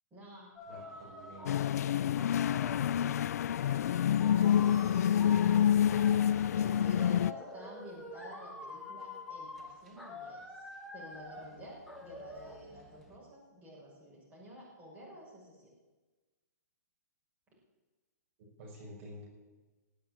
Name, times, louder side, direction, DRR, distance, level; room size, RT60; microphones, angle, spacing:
voice 1, 0.1-1.2 1.6-2.6 3.4-5.7 6.6-15.7, equal, 15° right, -5 dB, 6.5 m, -51 dB
sound 1, 0.6-3.0 3.7-13.2, left 2 dB, ahead, 2.3 m, -47 dB
voice 2, 0.7-1.8 18.6-19.3, equal, 50° right, -2 dB, 6.0 m, -49 dB
sound 2, 1.5-7.3, left 9 dB, 65° left, 0.4 m, -27 dB
18.5 x 8.0 x 9.4 m, 1.2 s
hypercardioid pair, 145°, 9 cm